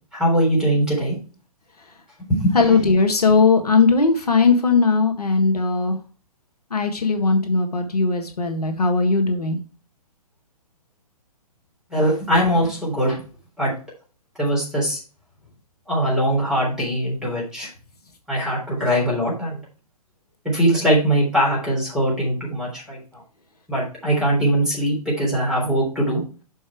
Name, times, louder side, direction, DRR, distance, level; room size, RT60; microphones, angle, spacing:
voice 1, 0.1-1.2 2.2-2.6 11.9-13.2 13.6-13.7 14.4-15.0 15.9-17.7 18.3-19.6 20.4-23.2 23.7-26.2, right 1 dB, 5° right, -5 dB, 3.8 m, -21 dB
voice 2, 2.5-5.9 6.7-9.6, left 4 dB, 80° left, 5 dB, 1.6 m, -18 dB
6.3 x 5.5 x 4.6 m, 0.37 s
figure-of-eight pair, 130°, 20 cm